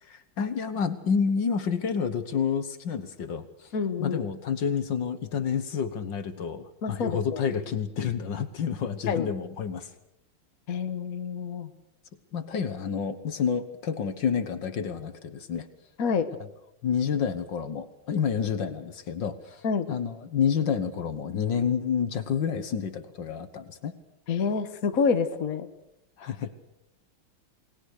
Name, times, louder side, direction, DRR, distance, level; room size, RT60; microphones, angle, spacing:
voice 1, 0.0-3.7 4.0-9.9 12.3-15.7 16.4-16.5 16.8-23.9 26.2-26.5, left 7 dB, 60° left, 11 dB, 1.9 m, -29 dB
voice 2, 3.7-4.2 6.8-7.5 9.1-9.3 10.7-11.7 16.0-16.3 19.6-19.9 24.3-25.7, left 5 dB, 45° left, 9 dB, 1.6 m, -27 dB
29.0 x 20.0 x 6.5 m, 0.81 s
omnidirectional pair, 2.3 m